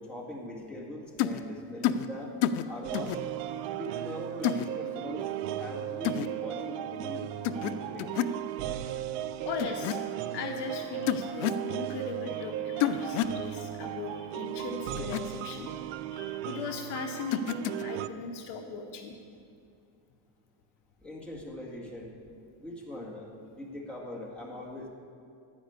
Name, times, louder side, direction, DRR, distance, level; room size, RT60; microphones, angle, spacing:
voice 1, 0.0-2.3 2.7-3.1 3.8-5.3 5.6-8.3 21.0-22.1 22.6-24.9, left 1 dB, ahead, -4 dB, 1.9 m, -41 dB
sound 1, 1.2-1.4 1.8-2.1 2.4-2.6 2.9-3.2 4.4-4.7 6.0-6.3 7.4-7.7 8.0-8.4 9.6-10.0 11.1-11.6 12.8-13.4 15.0-15.2 17.3-17.8, left 10 dB, 90° left, 0.6 m, -28 dB
sound 2, 2.8-18.1, right 12 dB, 90° right, 0.6 m, -36 dB
voice 2, 9.4-10.0 10.3-15.7 16.1-19.2, left 5 dB, 60° left, 4 dB, 0.9 m, -38 dB
11.0 x 5.2 x 8.0 m, 2.4 s
cardioid pair, 125°, 46 cm